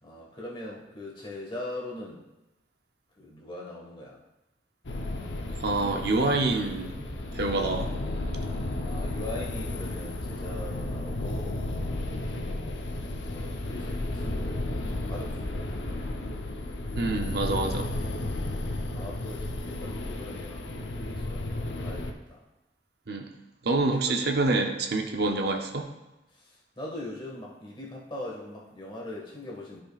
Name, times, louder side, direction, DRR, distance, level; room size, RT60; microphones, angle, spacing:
voice 1, 0.0-2.2 3.1-4.2 8.8-12.6 13.2-14.7 15.1-16.1 18.3-22.5 24.0-24.2 26.3-29.8, left 1 dB, 25° left, -3 dB, 1.7 m, -41 dB
sound 1, 4.8-22.1, left 1 dB, 85° left, 0.8 m, -33 dB
voice 2, 5.6-7.1 7.3-7.9 17.0-17.9 23.1-23.3 23.6-25.9, right 3 dB, 60° right, 4 dB, 0.7 m, -27 dB
13.0 x 5.2 x 2.4 m, 0.96 s
head